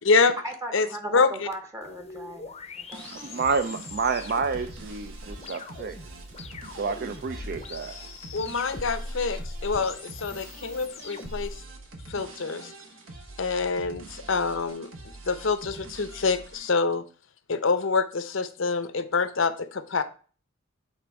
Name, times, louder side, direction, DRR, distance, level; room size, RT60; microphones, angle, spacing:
voice 1, 0.4-3.3, right 1 dB, 15° right, 0.8 m, -38 dB
voice 2, 1.1-1.5 8.3-11.6 12.1-12.7 13.4-14.9 15.3-17.0 17.5-20.0, left 4 dB, 70° left, 0.7 m, -26 dB
sound 1, 1.8-11.6, left 3 dB, 30° left, 0.6 m, -41 dB
sound 2, 2.9-16.7, right 2 dB, 75° right, 1.2 m, -45 dB
voice 3, 3.1-6.1 6.7-8.0, right 5 dB, 50° right, 0.4 m, -29 dB
8.1 x 3.5 x 4.7 m
head